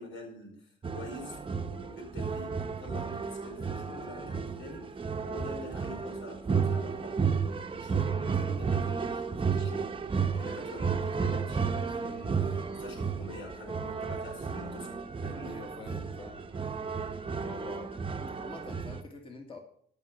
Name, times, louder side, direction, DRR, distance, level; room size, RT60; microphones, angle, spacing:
voice 1, 0.0-1.4 1.7-5.0 5.3-7.4 7.7-9.9 10.3-15.6, left 2 dB, 80° left, 0 dB, 4.9 m, -46 dB
sound 1, 0.8-19.0, right 5 dB, 25° right, 0.9 m, -33 dB
voice 2, 15.4-16.5 17.3-17.9 18.4-19.6, left 3 dB, 25° left, 2 dB, 1.8 m, -46 dB
13.0 x 5.7 x 6.7 m, 0.66 s
cardioid pair, 90°, 20 cm